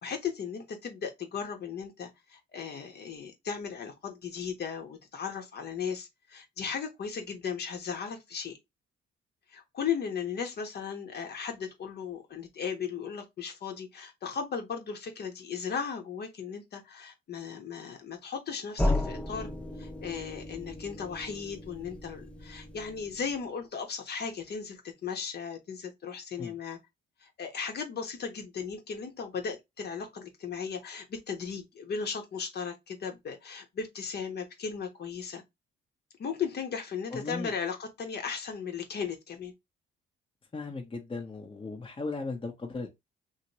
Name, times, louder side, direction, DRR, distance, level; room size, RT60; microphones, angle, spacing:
voice 1, 0.0-8.6 9.5-19.5 19.8-26.8 27.2-35.4 36.2-39.5, left 6 dB, 55° left, 1.1 m, -36 dB
sound 1, 18.8-23.5, left 1 dB, 5° left, 0.5 m, -34 dB
voice 2, 37.1-37.5 40.5-42.9, left 3 dB, 25° left, 1.0 m, -37 dB
2.9 x 2.8 x 3.0 m
cardioid pair, 90°, 20 cm